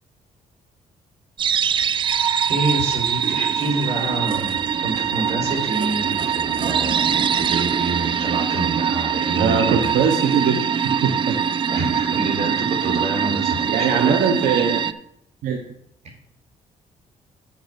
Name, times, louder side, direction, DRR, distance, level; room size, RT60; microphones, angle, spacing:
sound 1, 1.4-14.9, right 7 dB, 35° right, 0.4 m, -22 dB
voice 1, 2.5-9.9 11.7-14.2, right 2 dB, 55° right, -1 dB, 3.6 m, -27 dB
voice 2, 9.3-11.4 13.7-14.8 15.4-15.6, right 6 dB, 85° right, 4 dB, 1.0 m, -21 dB
7.3 x 7.0 x 5.8 m, 0.71 s
cardioid pair, 125°, 14 cm